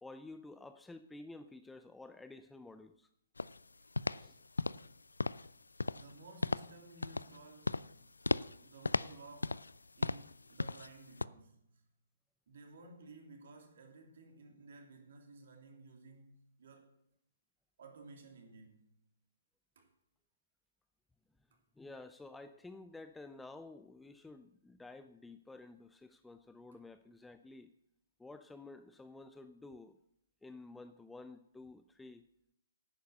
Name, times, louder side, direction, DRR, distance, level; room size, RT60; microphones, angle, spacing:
voice 1, 0.0-3.1 4.2-4.4 21.8-27.7 28.2-29.9 30.4-32.2, left 2 dB, 5° left, 0.5 m, -52 dB
sound 1, 3.4-3.6 4.0-4.3 4.6-4.9 5.2-5.5 5.8-6.1 6.4-6.7 7.0-7.4 7.6-7.9 8.2-8.6 8.8-9.8 10.0-10.3 10.6-10.9 11.2-11.3, left 3 dB, 75° left, 0.3 m, -35 dB
voice 2, 5.9-8.1 8.6-9.6 10.0-11.6 12.5-16.9 17.8-18.9 19.7-19.9, right 3 dB, 55° right, 3.0 m, -55 dB
10.5 x 9.4 x 6.6 m
figure-of-eight pair, 125°, 0 cm